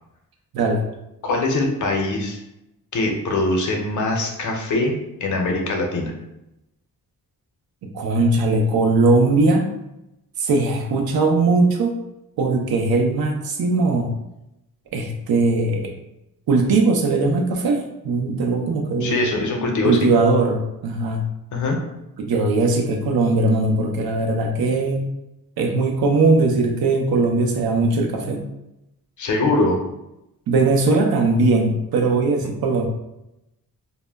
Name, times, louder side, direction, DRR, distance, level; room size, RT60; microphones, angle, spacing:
voice 1, 1.2-2.4 2.9-5.0 5.2-6.1 19.0-20.1 21.5-21.8 29.2-29.8, left 2 dB, 55° left, 2 dB, 0.5 m, -22 dB
voice 2, 7.8-9.6 10.4-11.9 12.4-14.1 14.9-15.9 16.5-19.2 19.8-21.3 22.2-25.1 25.6-28.4 30.5-32.9, right 3 dB, 80° right, 3 dB, 0.5 m, -19 dB
2.1 x 2.0 x 3.3 m, 0.89 s
wide cardioid pair, 135°, 36 cm